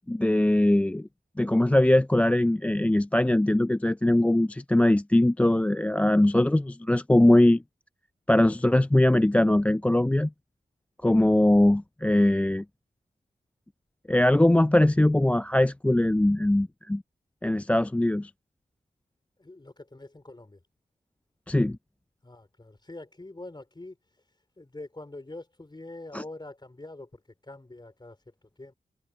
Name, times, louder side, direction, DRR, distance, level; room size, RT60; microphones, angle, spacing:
voice 1, 0.1-1.1 1.4-7.6 8.3-10.3 11.0-12.6 14.1-17.0 17.4-18.3 21.5-21.8 26.1-26.2, left 1 dB, 10° left, 0.3 m, -21 dB
voice 2, 19.4-20.6 22.2-24.0 24.6-28.7, left 2 dB, 25° left, 4.0 m, -44 dB
wide cardioid pair, 65°, 16 cm